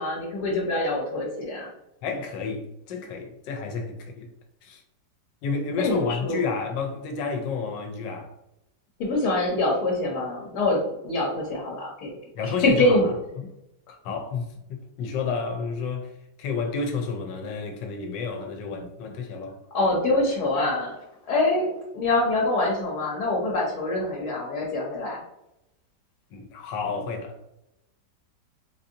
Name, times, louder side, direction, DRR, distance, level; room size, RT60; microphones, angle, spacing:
voice 1, 0.0-1.7 5.8-6.4 9.0-12.1 12.6-13.0 19.7-21.0 21.3-25.2, left 2 dB, 70° left, 1.3 m, -25 dB
voice 2, 2.0-4.3 4.6-4.8 5.4-8.3 12.3-13.5 13.9-16.1 16.4-19.6 26.3-27.4, left 5 dB, 90° left, 1.3 m, -31 dB
3.9 x 2.6 x 2.6 m
omnidirectional pair, 1.9 m